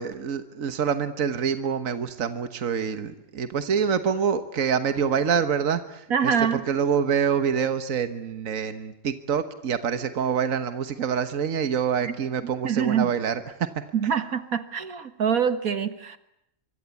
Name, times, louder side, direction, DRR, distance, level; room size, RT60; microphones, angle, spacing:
voice 1, 0.0-14.1, right 7 dB, 70° right, 10 dB, 1.6 m, -26 dB
voice 2, 6.1-6.6 12.1-12.2 12.6-13.1 13.9-16.2, right 7 dB, 85° right, 11 dB, 2.0 m, -25 dB
25.5 x 24.0 x 8.3 m, 0.80 s
omnidirectional pair, 1.5 m